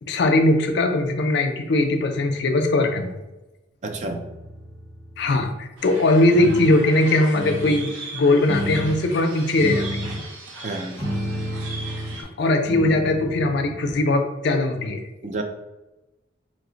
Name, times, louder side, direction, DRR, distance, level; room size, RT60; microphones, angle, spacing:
voice 1, 0.0-3.1 5.2-10.0 12.2-15.0, left 2 dB, 55° left, 5 dB, 0.4 m, -20 dB
voice 2, 3.8-4.3 10.6-11.1 15.2-15.4, right 2 dB, 35° right, 5 dB, 0.3 m, -30 dB
sound 1, 3.9-5.5 6.3-6.8 7.3-7.9 8.4-9.1 9.6-10.3 10.9-12.2 12.6-13.8, equal, 10° left, 0.9 m, -31 dB
sound 2, 5.8-12.2, right 3 dB, 75° right, 0.6 m, -39 dB
3.1 x 2.1 x 3.8 m, 1.0 s
head